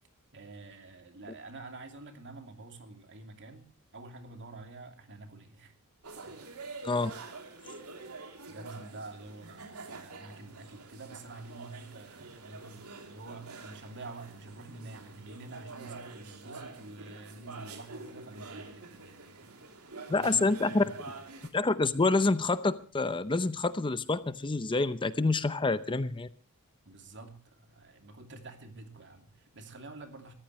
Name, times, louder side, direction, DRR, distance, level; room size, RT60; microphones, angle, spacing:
voice 1, 0.3-5.7 6.2-6.4 8.4-21.2 26.8-30.3, right 2 dB, 55° right, 2.8 m, -48 dB
sound 1, 6.0-21.5, right 3 dB, 85° right, 3.0 m, -47 dB
voice 2, 20.1-20.8 21.5-26.3, left 3 dB, 20° left, 0.6 m, -27 dB
23.5 x 14.5 x 3.1 m
head